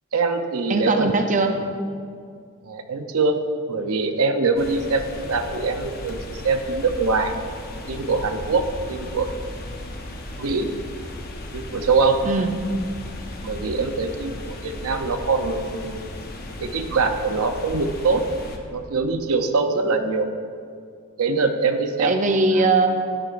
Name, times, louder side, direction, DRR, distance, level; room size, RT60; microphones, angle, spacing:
voice 1, 0.1-1.2 2.6-3.4 3.7-7.3 7.9-9.3 10.4-10.7 11.5-12.2 13.4-16.1 16.6-18.2 18.7-20.3 21.2-22.7, right 4 dB, 85° right, 7 dB, 0.7 m, -23 dB
voice 2, 0.7-1.7 12.2-12.5 22.0-22.9, right 3 dB, 35° right, 5 dB, 0.5 m, -20 dB
sound 1, 4.6-18.6, left 1 dB, 45° left, 1.0 m, -36 dB
12.0 x 11.0 x 2.5 m, 2.2 s
head